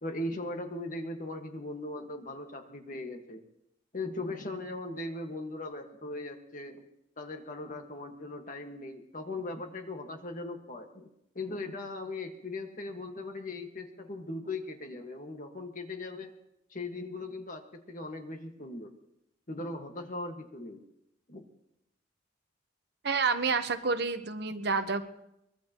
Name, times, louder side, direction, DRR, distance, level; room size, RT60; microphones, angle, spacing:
voice 1, 0.0-3.4 3.9-6.9 7.2-11.1 11.3-16.3 16.7-18.9 19.5-20.8 21.3-21.5, left 2 dB, 45° left, 4 dB, 1.7 m, -39 dB
voice 2, 23.0-25.0, right 4 dB, 55° right, 8 dB, 1.1 m, -29 dB
23.0 x 20.5 x 3.0 m, 0.83 s
head